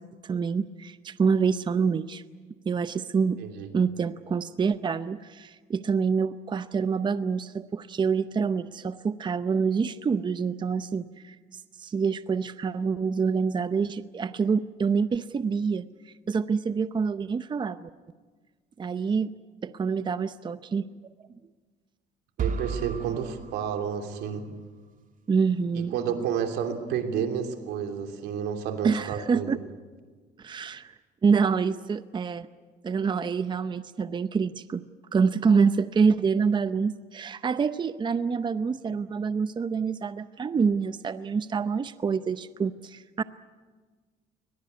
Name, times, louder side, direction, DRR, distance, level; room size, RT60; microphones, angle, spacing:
voice 1, 0.0-2.2 2.7-3.4 3.7-17.9 18.8-19.3 19.6-20.9 25.3-25.9 28.8-29.6 30.4-30.9 31.2-32.5 32.8-34.8 35.1-43.2, right 5 dB, 25° right, 13 dB, 0.7 m, -26 dB
voice 2, 3.4-3.7 22.4-24.5 25.7-29.6, right 8 dB, 85° right, 5 dB, 3.0 m, -30 dB
sound 1, 22.4-24.4, right 6 dB, 50° right, 2.1 m, -34 dB
21.5 x 21.0 x 9.5 m, 1.4 s
cardioid pair, 110°, 17 cm